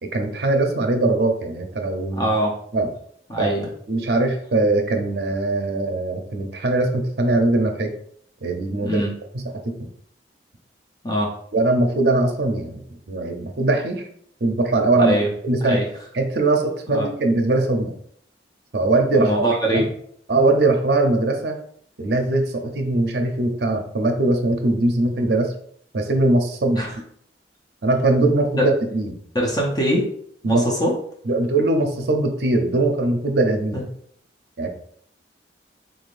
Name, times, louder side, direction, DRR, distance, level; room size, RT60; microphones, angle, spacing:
voice 1, 0.0-2.3 2.7-2.9 3.4-3.5 3.9-7.9 8.4-9.0 9.6-9.9 11.5-14.1 14.4-15.1 15.4-15.8 16.2-18.0 18.7-19.4 19.7-19.8 20.3-21.6 22.0-25.5 25.9-26.9 27.8-29.2 30.4-30.7 31.3-33.8 34.6-34.7, right 2 dB, 65° right, 4 dB, 0.6 m, -21 dB
voice 2, 2.1-2.6 3.3-3.7 8.8-9.1 11.0-11.3 15.0-15.3 15.6-15.9 16.9-17.1 19.1-19.9 26.8-26.9 28.6-28.7 29.3-30.1 30.4-30.9, equal, 20° left, -2 dB, 0.7 m, -22 dB
3.8 x 3.5 x 2.5 m, 0.64 s
head